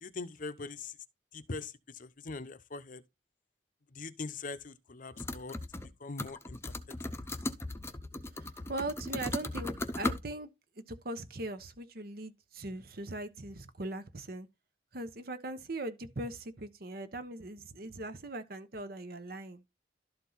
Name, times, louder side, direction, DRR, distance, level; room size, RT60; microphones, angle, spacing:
voice 1, 0.0-1.0 1.3-3.0 3.9-5.6 6.0-6.7, left 3 dB, 50° left, 0.7 m, -42 dB
sound 1, 5.2-5.9 6.2-10.2, left 1 dB, 15° left, 0.7 m, -37 dB
voice 2, 8.4-10.5 10.9-14.5 14.9-19.7, right 2 dB, 55° right, 1.1 m, -40 dB
12.0 x 4.6 x 4.0 m
head